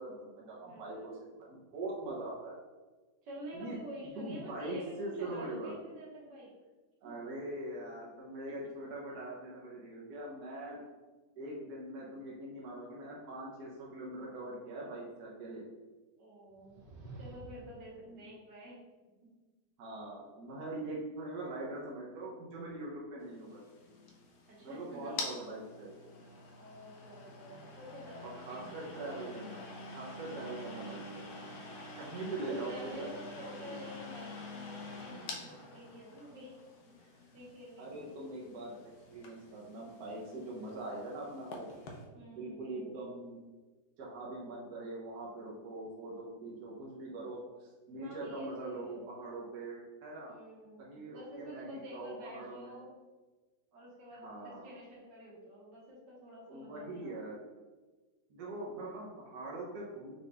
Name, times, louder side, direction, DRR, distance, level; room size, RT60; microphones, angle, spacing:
voice 1, 0.0-2.6 3.5-3.8 4.2-5.7 7.0-10.8 11.4-15.6 18.1-18.2 19.8-23.6 24.6-26.0 28.2-29.7 29.9-31.2 32.0-33.1 33.5-33.8 37.8-38.8 39.1-41.7 42.3-43.4 44.0-50.3 50.8-52.9 54.2-54.7 56.5-57.4 58.3-60.2, right 2 dB, 70° right, -4 dB, 1.4 m, -42 dB
voice 2, 0.6-1.1 3.2-6.5 8.5-8.7 16.2-16.8 17.2-18.8 19.2-19.3 24.5-25.2 26.5-28.7 30.3-30.6 32.3-36.6 37.0-37.9 42.1-42.9 48.0-49.0 50.3-52.9 53.7-57.2 58.7-58.9, equal, 90° right, -5 dB, 2.0 m, -49 dB
sound 1, 16.5-17.8, right 2 dB, 50° right, 0.6 m, -49 dB
sound 2, 23.3-42.0, left 2 dB, 75° left, 1.2 m, -47 dB
5.5 x 2.4 x 3.9 m, 1.3 s
omnidirectional pair, 1.8 m